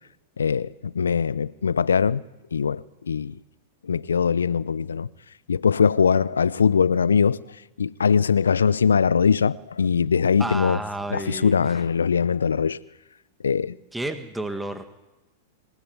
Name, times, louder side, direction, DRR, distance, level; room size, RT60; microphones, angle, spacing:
voice 1, 0.4-2.2 2.5-3.3 3.9-5.1 5.5-7.4 7.8-10.8 11.1-12.8 13.4-13.7, left 6 dB, 85° left, 0.7 m, -21 dB
voice 2, 10.4-11.8 13.9-14.8, right 2 dB, 5° right, 2.0 m, -31 dB
28.0 x 16.5 x 9.7 m
hypercardioid pair, 100°, 0 cm